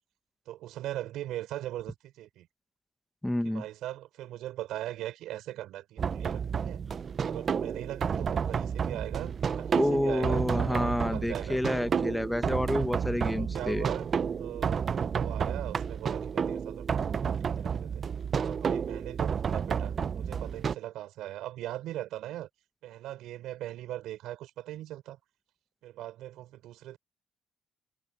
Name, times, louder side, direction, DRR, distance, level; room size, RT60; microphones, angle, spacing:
voice 1, 0.5-2.5 3.4-6.8 7.2-11.6 12.4-12.5 13.4-14.1 14.4-18.0 18.4-22.5 22.8-25.2 25.8-27.0, right 14 dB, 90° right, 5.2 m, -40 dB
voice 2, 3.2-3.6 9.7-13.9, left 1 dB, 5° left, 1.1 m, -29 dB
sound 1, 6.0-20.8, right 7 dB, 50° right, 0.6 m, -31 dB
cardioid pair, 90°, 0 cm